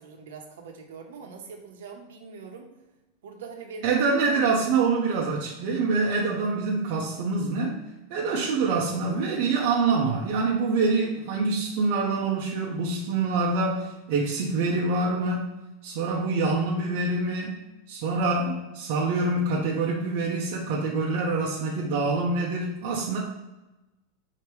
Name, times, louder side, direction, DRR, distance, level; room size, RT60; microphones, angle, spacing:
voice 1, 0.0-2.7 3.2-4.5, right 5 dB, 85° right, 2 dB, 0.9 m, -42 dB
voice 2, 3.8-7.8 8.1-15.5 15.8-17.6 17.9-23.2, right 3 dB, 50° right, -4 dB, 0.7 m, -25 dB
4.7 x 2.8 x 3.1 m, 1.0 s
supercardioid pair, 170°, 0 cm